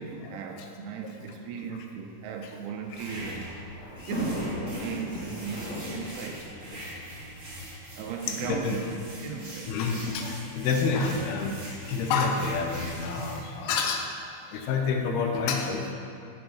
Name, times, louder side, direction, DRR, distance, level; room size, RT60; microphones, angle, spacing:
voice 1, 0.0-3.5 4.1-6.9 8.0-9.0 9.2-9.8 10.7-11.2, right 5 dB, 85° right, 3 dB, 2.6 m, -36 dB
Thunder, 2.8-8.0 8.8-8.9 9.1-9.2 10.3-10.6, left 1 dB, 50° left, 2.6 m, -38 dB
sound 1, 2.9-13.4, right 1 dB, 30° right, 1.1 m, -42 dB
voice 2, 8.4-8.8 9.7-14.1 14.4-15.9, left 5 dB, 80° left, 3 dB, 2.6 m, -28 dB
8.3 x 6.1 x 5.8 m, 2.5 s
omnidirectional pair, 4.6 m